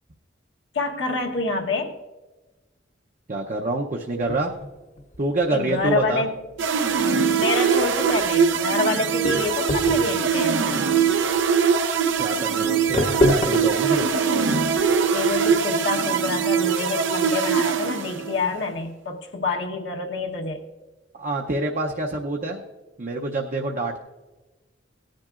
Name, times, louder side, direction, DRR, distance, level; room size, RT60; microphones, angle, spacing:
voice 1, 0.7-2.0 5.5-6.3 7.4-10.7 15.1-20.6, left 3 dB, 75° left, 1 dB, 1.1 m, -27 dB
voice 2, 3.3-4.5 5.2-6.2 12.2-14.1 21.1-22.6 23.0-24.0, right 2 dB, 45° right, 1 dB, 0.7 m, -26 dB
sound 1, 4.2-15.6, equal, 40° left, 0.7 m, -29 dB
sound 2, 6.6-18.5, right 6 dB, 85° right, 0.7 m, -22 dB
17.5 x 10.5 x 2.4 m, 1.2 s
head